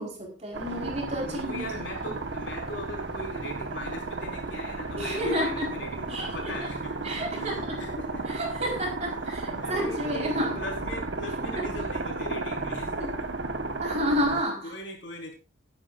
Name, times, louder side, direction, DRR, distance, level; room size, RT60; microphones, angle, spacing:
voice 1, 0.0-1.7 5.0-5.7 6.1-6.5 7.0-7.8 8.3-10.6 11.5-11.7 13.0-13.1 13.8-14.7, equal, 35° right, 0 dB, 4.4 m, -30 dB
sound 1, 0.5-14.4, right 3 dB, 65° right, 1.3 m, -34 dB
voice 2, 1.2-8.3 9.5-13.3 14.6-15.3, left 1 dB, 70° left, 0 dB, 4.4 m, -39 dB
19.5 x 9.6 x 2.5 m, 0.33 s
head